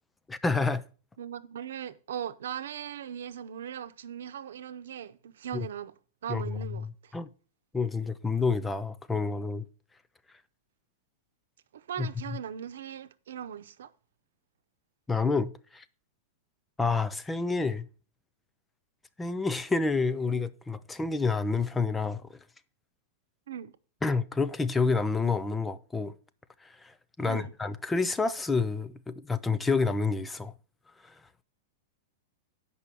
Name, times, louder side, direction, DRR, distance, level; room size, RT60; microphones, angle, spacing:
voice 1, 0.3-0.8 5.5-5.7 6.3-7.3 7.7-9.6 12.0-12.4 15.1-15.8 16.8-17.9 19.2-22.2 24.0-26.1 26.6-30.5 31.0-31.1, left 4 dB, 5° left, 0.3 m, -29 dB
voice 2, 1.2-5.9 6.2-7.1 11.7-13.9 23.5-23.7 27.2-27.5, right 9 dB, 85° right, 0.7 m, -39 dB
8.5 x 5.5 x 6.0 m
supercardioid pair, 180°, 0 cm